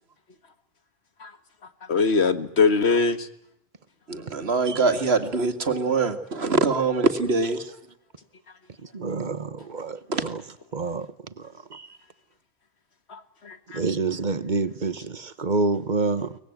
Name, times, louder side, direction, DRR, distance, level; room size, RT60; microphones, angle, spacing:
voice 1, 1.8-3.3 13.1-13.8, left 4 dB, 85° left, 1.9 m, -22 dB
voice 2, 4.1-7.6 10.1-10.2, right 3 dB, 75° right, 2.2 m, -23 dB
voice 3, 8.9-10.4 10.7-11.1 11.4-11.9 13.7-16.4, right 3 dB, 45° right, 1.3 m, -28 dB
23.5 x 20.0 x 9.3 m
omnidirectional pair, 1.1 m